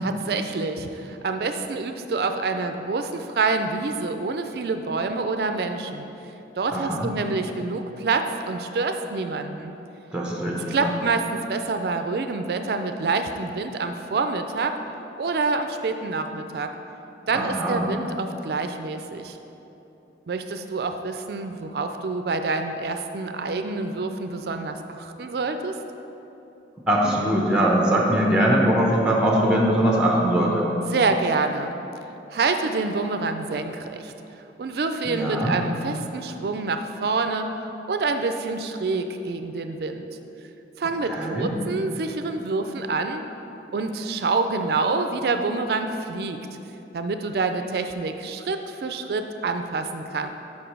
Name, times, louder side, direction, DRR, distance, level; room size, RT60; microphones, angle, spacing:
voice 1, 0.0-6.1 6.6-9.7 10.7-14.8 15.2-16.7 17.3-19.4 20.3-25.8 30.9-31.7 32.3-34.1 34.6-37.5 37.9-40.1 40.8-43.2 43.7-46.4 46.9-50.3, right 3 dB, 60° right, 7 dB, 0.4 m, -27 dB
voice 2, 6.7-7.1 10.1-10.9 17.3-17.9 26.9-30.7 35.1-35.5 41.1-41.6, right 1 dB, 5° right, -2 dB, 0.7 m, -22 dB
5.3 x 5.0 x 6.0 m, 3.0 s
head